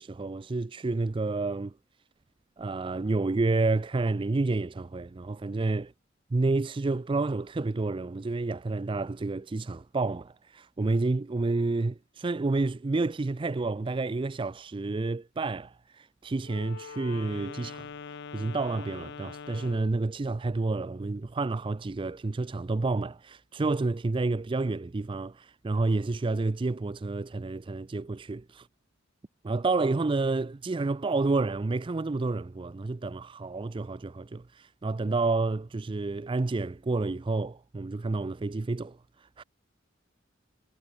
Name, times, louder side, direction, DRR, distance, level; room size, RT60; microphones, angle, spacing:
voice 1, 0.0-1.7 2.6-5.9 6.3-28.7 29.4-39.4, right 3 dB, 25° right, 0.4 m, -29 dB
Wind instrument woodwind instrument, 16.4-20.0, left 5 dB, 60° left, 0.6 m, -43 dB
head